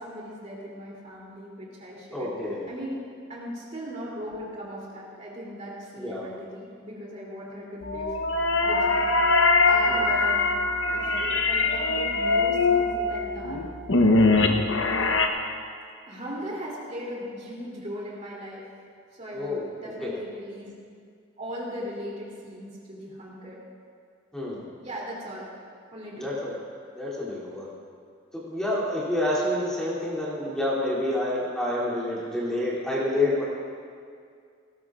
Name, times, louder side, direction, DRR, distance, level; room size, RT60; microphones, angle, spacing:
voice 1, 0.0-3.0 3.3-9.1 9.6-13.6 16.0-18.6 19.1-20.7 21.4-23.6 24.8-25.5 25.9-26.3, equal, 35° right, -5 dB, 3.1 m, -38 dB
voice 2, 2.1-2.7 6.0-6.3 9.9-10.1 19.3-19.6 20.0-20.1 24.3-24.6 26.2-26.5 26.9-27.7 28.3-33.4, left 1 dB, 5° left, -8 dB, 2.9 m, -28 dB
sound 1, 7.8-15.3, left 3 dB, 70° left, 1.0 m, -22 dB
19.0 x 18.5 x 2.5 m, 2.3 s
head